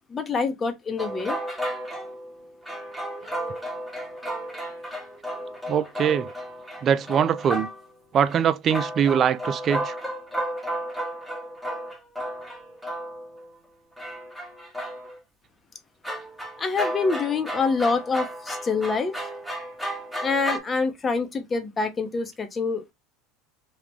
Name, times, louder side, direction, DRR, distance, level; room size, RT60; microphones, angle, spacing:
voice 1, 0.1-1.4 16.6-19.1 20.2-22.9, left 4 dB, 25° left, 0.8 m, -26 dB
sound 1, 1.0-8.0 8.3-8.4 8.7-13.5 14.0-15.2 16.0-20.6, right 1 dB, ahead, 1.1 m, -33 dB
voice 2, 5.7-6.3 6.8-7.7 8.1-10.0, right 8 dB, 40° right, 0.4 m, -22 dB
3.0 x 2.4 x 3.5 m
supercardioid pair, 95°, 0 cm